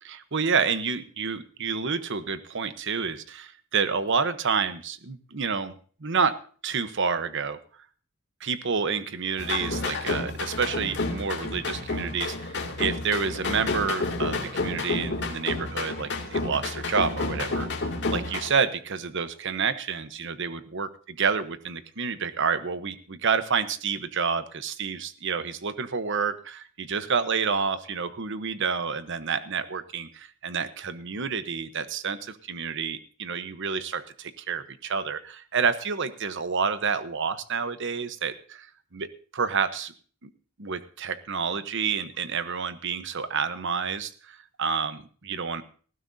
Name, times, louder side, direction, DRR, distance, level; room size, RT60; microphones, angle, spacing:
voice 1, 0.0-5.8 6.0-6.3 6.6-7.6 8.4-38.7 38.9-39.9 40.2-40.3 40.6-45.6, right 5 dB, 55° right, 12 dB, 1.0 m, -29 dB
sound 1, 9.4-18.5, left 3 dB, 55° left, 2.6 m, -30 dB
19.0 x 15.5 x 2.7 m, 0.42 s
head